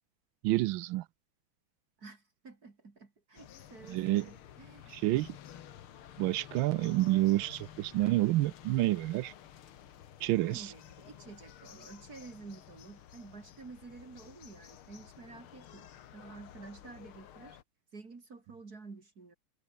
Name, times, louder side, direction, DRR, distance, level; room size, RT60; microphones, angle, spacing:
voice 1, 0.4-1.0 3.9-4.3 4.9-5.4 6.2-9.3 10.2-10.7, right 17 dB, 75° right, 1.3 m, -28 dB
voice 2, 2.0-4.9 10.4-17.6 17.9-19.3, right 4 dB, 45° right, 3.2 m, -50 dB
sound 1, 3.4-17.6, left 10 dB, 80° left, 2.1 m, -52 dB
omnidirectional pair, 2.4 m